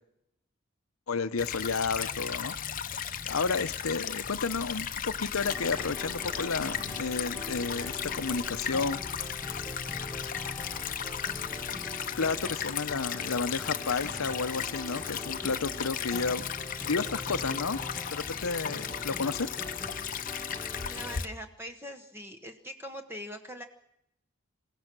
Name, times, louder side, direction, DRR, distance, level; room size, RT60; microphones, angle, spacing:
voice 1, 1.1-2.5 2.9-9.0 12.2-16.5 16.8-17.8 18.1-19.5, left 4 dB, 90° left, 13 dB, 0.8 m, -32 dB
Stream / Trickle dribble, 1.4-21.2, left 8 dB, 40° left, 0.8 m, -36 dB
sound 1, 4.2-11.7, right 1 dB, 40° right, 1.0 m, -52 dB
sound 2, 5.4-21.2, left 1 dB, 10° left, 1.5 m, -42 dB
voice 2, 20.9-23.6, equal, 10° right, 5 dB, 1.0 m, -42 dB
27.5 x 16.5 x 6.1 m, 0.79 s
head